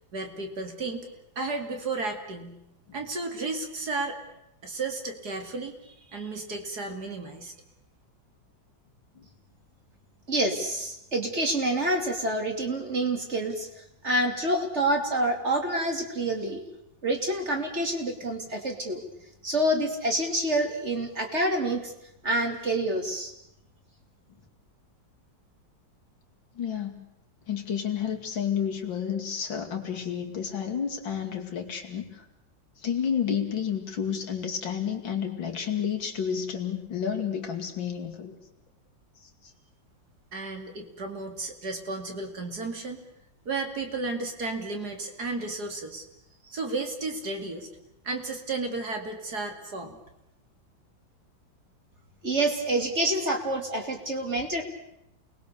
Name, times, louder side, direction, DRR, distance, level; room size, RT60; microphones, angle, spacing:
voice 1, 0.1-1.1 1.4-2.6 2.9-4.2 4.6-7.5 40.3-43.0 43.4-46.0 46.4-47.7 48.0-50.0, right 3 dB, 55° right, 4 dB, 3.1 m, -33 dB
voice 2, 10.3-13.7 14.0-16.6 17.0-19.0 19.4-21.9 22.2-23.3 52.2-54.6, right 1 dB, 35° right, 3 dB, 3.2 m, -27 dB
voice 3, 26.6-26.9 27.5-32.2 32.8-38.3 39.4-39.5, left 8 dB, 90° left, 3 dB, 3.2 m, -30 dB
29.0 x 20.5 x 6.9 m, 0.83 s
omnidirectional pair, 2.0 m